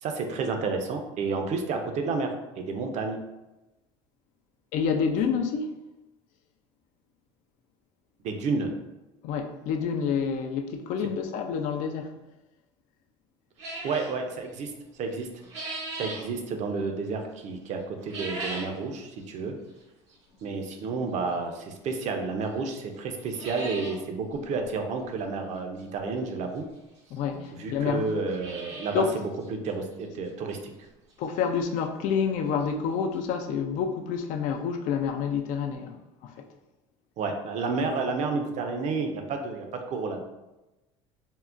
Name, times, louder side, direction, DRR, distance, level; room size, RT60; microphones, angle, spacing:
voice 1, 0.0-3.2 8.2-8.7 13.8-14.7 15.0-15.3 15.9-19.6 20.4-26.7 27.6-29.0 29.5-30.7 37.2-40.3, right 4 dB, 50° right, 4 dB, 0.5 m, -30 dB
voice 2, 4.7-5.7 9.2-12.2 20.4-20.6 27.1-28.1 28.9-29.2 31.2-36.5, left 6 dB, 60° left, 5 dB, 0.4 m, -28 dB
sound 1, 13.6-14.2 15.1-16.3 18.0-18.8 19.2-19.3 20.1-20.2 21.9-22.0 22.4-22.5 22.8-22.9 23.2-24.0 24.3-24.4 24.6-24.7 26.3-26.4 27.2-27.3 27.4-27.5 28.1-29.1 29.4-29.5 30.0-30.1 30.5-30.6 32.3-32.4 32.6-32.7 33.1-33.2, right 2 dB, 90° right, 0.9 m, -37 dB
3.6 x 2.1 x 2.4 m, 1.0 s
supercardioid pair, 85°, 15 cm